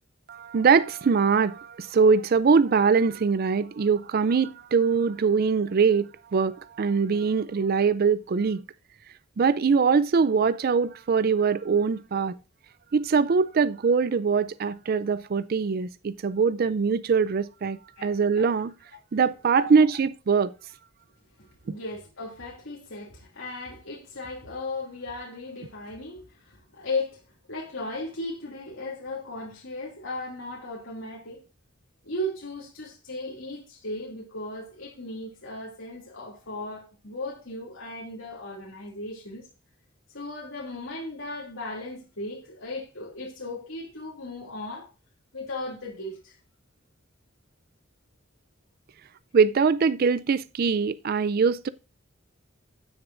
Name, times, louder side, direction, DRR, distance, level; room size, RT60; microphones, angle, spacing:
voice 1, 0.3-8.6 9.4-12.4 12.9-18.7 19.1-20.5 21.7-21.8 49.3-51.7, right 5 dB, 50° right, 0.4 m, -22 dB
voice 2, 21.4-27.2 27.5-31.4 32.0-39.5 40.1-44.9 45.3-46.4, left 2 dB, 85° left, 2.7 m, -36 dB
16.0 x 6.8 x 2.6 m
head